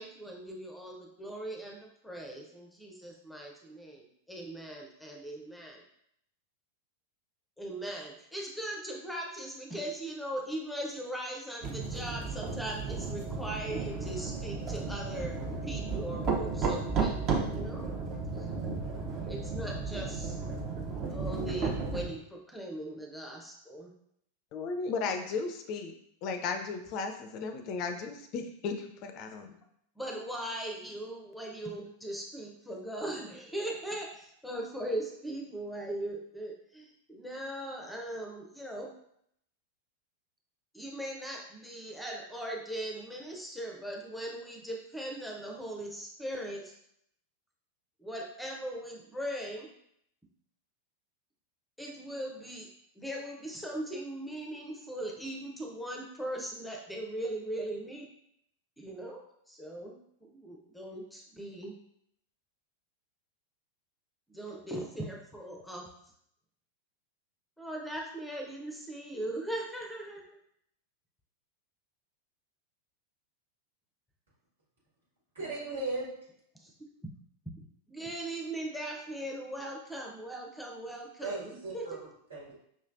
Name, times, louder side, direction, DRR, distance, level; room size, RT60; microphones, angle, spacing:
voice 1, 0.0-5.8 7.6-17.9 18.4-18.8 19.3-20.4 21.1-23.9 30.0-38.9 40.7-46.7 48.0-49.7 51.8-52.7 53.0-58.1 58.8-59.2 59.5-61.8 64.3-65.9 67.6-70.4 77.0-77.1 77.9-82.0, right 1 dB, ahead, 0 dB, 0.6 m, -39 dB
sound 1, 11.6-22.1, right 4 dB, 35° right, 0.7 m, -34 dB
voice 2, 24.5-25.9 26.2-29.6, left 4 dB, 40° left, 7 dB, 0.4 m, -35 dB
voice 3, 75.4-76.1 81.2-82.5, right 2 dB, 65° right, -5 dB, 1.7 m, -37 dB
5.4 x 3.1 x 2.5 m, 0.72 s
figure-of-eight pair, 90°, 0 cm